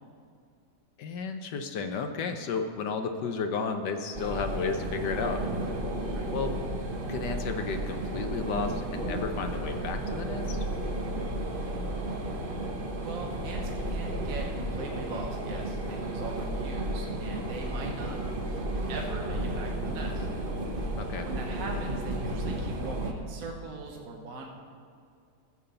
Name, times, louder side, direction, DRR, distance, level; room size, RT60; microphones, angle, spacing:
voice 1, 1.0-5.4 6.3-6.5 7.1-10.6 21.0-21.3, left 5 dB, 75° left, 6 dB, 1.4 m, -33 dB
sound 1, 4.1-23.1, right 1 dB, 35° right, 0.9 m, -33 dB
voice 2, 13.0-18.2 18.9-20.3 21.2-24.5, right 3 dB, 55° right, 1 dB, 1.3 m, -40 dB
14.5 x 7.4 x 6.8 m, 2.3 s
omnidirectional pair, 1.9 m